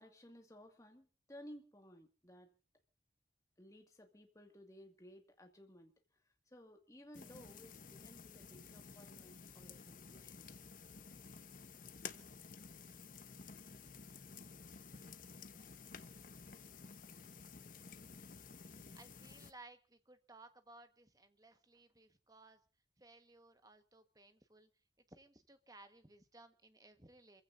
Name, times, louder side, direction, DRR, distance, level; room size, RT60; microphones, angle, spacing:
voice 1, 0.0-2.5 3.6-5.9 6.5-10.5, equal, 15° left, 4 dB, 2.1 m, -58 dB
sound 1, 7.1-19.5, left 5 dB, 45° left, 1.0 m, -53 dB
voice 2, 19.0-22.6 23.0-27.4, right 2 dB, 20° right, 8 dB, 1.5 m, -60 dB
27.0 x 15.5 x 2.7 m, 0.36 s
head